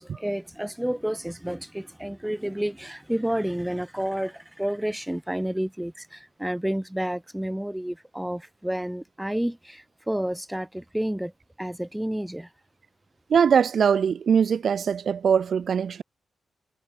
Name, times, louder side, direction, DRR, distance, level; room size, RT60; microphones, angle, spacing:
voice 1, 0.0-11.3 11.6-12.5, right 1 dB, 5° right, 1.1 m, -30 dB
voice 2, 13.3-16.0, right 7 dB, 60° right, 0.4 m, -21 dB
wide cardioid pair, 145°, 0 cm